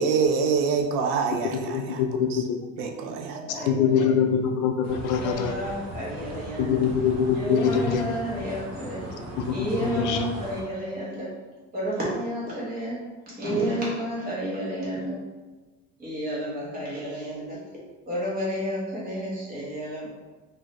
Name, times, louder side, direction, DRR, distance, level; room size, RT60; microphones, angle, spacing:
voice 1, 0.0-2.0 2.3-2.4 2.8-3.7, right 5 dB, 80° right, 3 dB, 0.6 m, -26 dB
voice 2, 1.5-2.6 3.7-5.5 6.6-8.0 9.4-10.3, left 7 dB, 70° left, 6 dB, 0.5 m, -24 dB
voice 3, 3.0-4.2 5.1-6.8 7.3-9.0 9.5-11.3 11.7-15.2 16.0-17.6 18.1-20.1, right 1 dB, 30° right, -6 dB, 1.3 m, -31 dB
sound 1, 4.8-10.6, right 1 dB, 55° right, 0.8 m, -38 dB
4.0 x 2.7 x 3.1 m, 1.2 s
cardioid pair, 175°, 32 cm